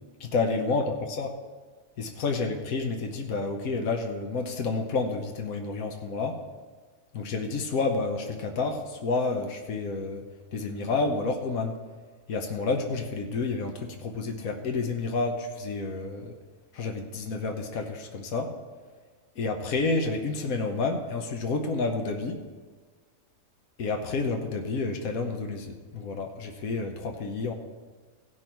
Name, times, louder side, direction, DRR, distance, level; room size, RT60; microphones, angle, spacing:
voice 1, 0.2-1.3 2.0-6.4 7.1-10.2 10.5-11.8 12.3-16.3 16.7-18.5 19.4-22.4 23.8-27.5, left 3 dB, 80° left, 3 dB, 1.4 m, -29 dB
15.5 x 6.3 x 4.5 m, 1.5 s
omnidirectional pair, 1.5 m